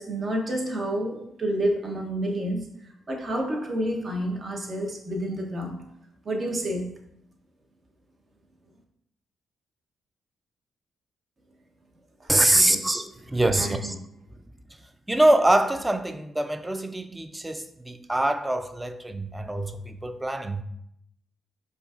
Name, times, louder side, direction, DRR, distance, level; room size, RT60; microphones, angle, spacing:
voice 1, 0.0-2.7 3.1-5.8 6.2-6.9 12.2-12.3 12.7-12.8 13.6-13.9, right 1 dB, 45° right, 0.8 m, -29 dB
voice 2, 12.3-14.0 15.1-20.6, right 1 dB, 15° right, 0.3 m, -24 dB
4.9 x 2.4 x 2.4 m
supercardioid pair, 55°, 0 cm